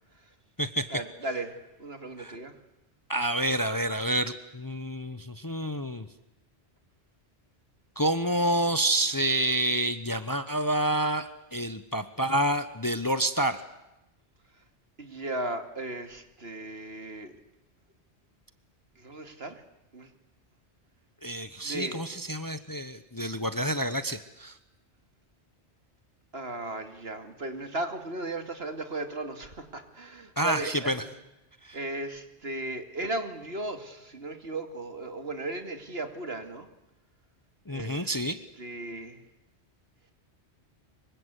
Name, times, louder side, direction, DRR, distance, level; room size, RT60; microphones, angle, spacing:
voice 1, 0.9-2.5 15.0-17.3 19.0-19.6 19.9-20.1 21.6-22.1 26.3-31.1 31.7-36.7 37.7-38.2 38.6-39.2, right 2 dB, 60° right, 7 dB, 2.7 m, -36 dB
voice 2, 3.1-6.1 8.0-13.6 21.2-24.6 30.4-31.0 31.6-31.8 37.7-38.4, right 1 dB, 20° left, 11 dB, 0.9 m, -28 dB
25.0 x 24.0 x 8.3 m, 0.94 s
omnidirectional pair, 1.1 m